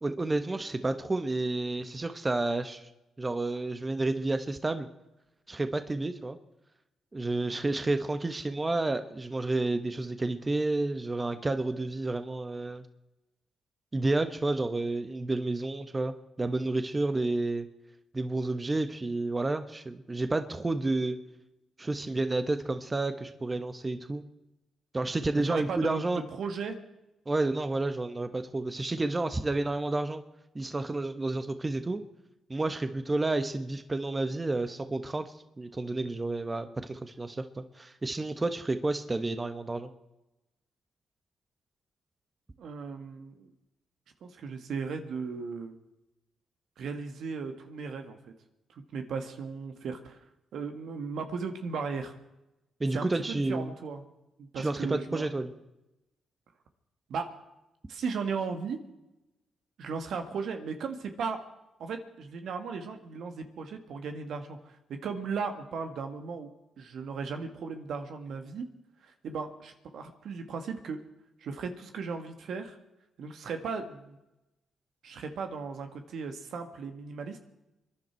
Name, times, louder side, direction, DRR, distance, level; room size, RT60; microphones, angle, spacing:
voice 1, 0.0-2.9 3.2-4.9 5.5-6.4 7.1-12.8 13.9-17.7 18.1-21.2 21.8-24.2 24.9-26.2 27.3-30.2 30.5-32.0 32.5-39.9 52.8-53.7 54.5-55.5, right 2 dB, 25° right, 9 dB, 1.2 m, -30 dB
voice 2, 25.5-26.8 42.6-43.5 44.2-45.7 46.8-48.2 48.7-50.2 50.5-52.2 52.9-54.0 54.4-55.3 57.1-57.3 57.9-58.8 59.8-61.4 61.8-66.5 66.8-68.7 69.0-71.0 71.4-72.8 73.2-74.2 75.0-77.4, right 5 dB, 75° right, 6 dB, 1.8 m, -36 dB
24.5 x 11.0 x 4.5 m, 0.96 s
supercardioid pair, 60°, 0 cm